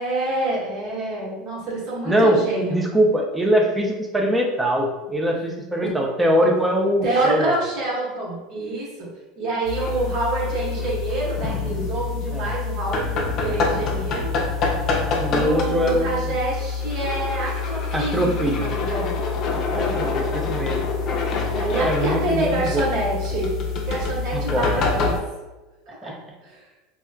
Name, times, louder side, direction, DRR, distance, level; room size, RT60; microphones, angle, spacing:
voice 1, 0.0-2.8 5.8-5.9 7.0-9.1 9.4-14.3 15.3-18.3 18.5-19.1 19.7-20.0 21.5-23.5 23.8-25.2 25.9-26.1 26.5-26.6, right 2 dB, 55° right, -5 dB, 1.3 m, -27 dB
voice 2, 2.0-7.5 12.3-12.5 15.2-16.3 17.9-18.7 19.7-20.9 21.7-22.9 24.3-24.9 26.0-26.2, equal, 10° right, 1 dB, 0.5 m, -22 dB
sound 1, 9.6-25.2, left 4 dB, 40° left, 0.5 m, -26 dB
4.1 x 2.3 x 2.2 m, 1.1 s
supercardioid pair, 125°, 0 cm